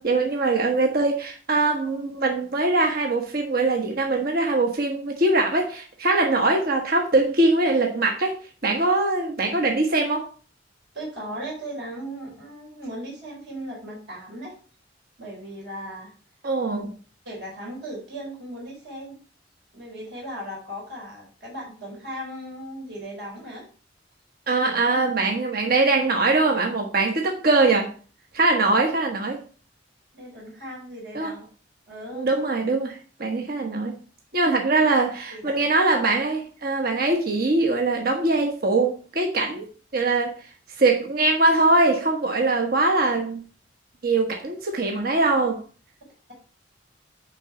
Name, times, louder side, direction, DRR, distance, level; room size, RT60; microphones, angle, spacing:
voice 1, 0.0-10.3 16.4-16.9 24.5-27.9 28.3-29.4 31.1-31.3 32.1-34.0 34.3-40.3 40.8-43.4 44.0-45.6, right 2 dB, 55° right, 1.1 m, -22 dB
voice 2, 10.9-14.6 15.2-16.1 17.2-19.2 19.7-23.7 24.6-24.7 30.1-31.5 31.9-32.3 35.3-35.6, right 1 dB, 70° right, 4.3 m, -37 dB
9.9 x 3.8 x 4.3 m
head